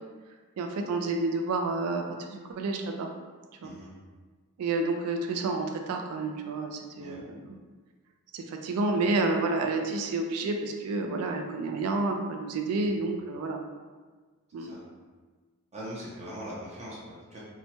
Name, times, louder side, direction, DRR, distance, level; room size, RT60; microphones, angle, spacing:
voice 1, 0.6-2.0 2.3-3.1 3.6-3.7 4.6-7.6 8.3-13.6 14.5-14.7, right 3 dB, 85° right, 3 dB, 0.3 m, -30 dB
voice 2, 15.7-17.4, equal, 30° right, -7 dB, 0.6 m, -41 dB
2.8 x 2.2 x 2.7 m, 1.4 s
head